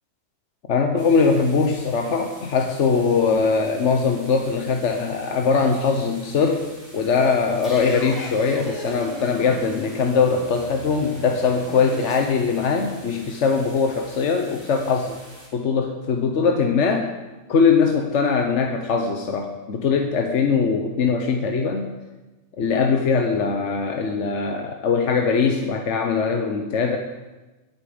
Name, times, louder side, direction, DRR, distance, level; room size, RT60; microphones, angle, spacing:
voice 1, 0.7-15.2 15.5-17.1 17.5-21.9 22.6-27.0, left 5 dB, 80° left, 4 dB, 1.3 m, -21 dB
sound 1, 1.0-15.5, equal, 40° right, 3.8 m, -47 dB
sound 2, 6.9-12.2, right 1 dB, ahead, 5.4 m, -39 dB
21.0 x 8.9 x 5.1 m, 1.1 s
omnidirectional pair, 1.2 m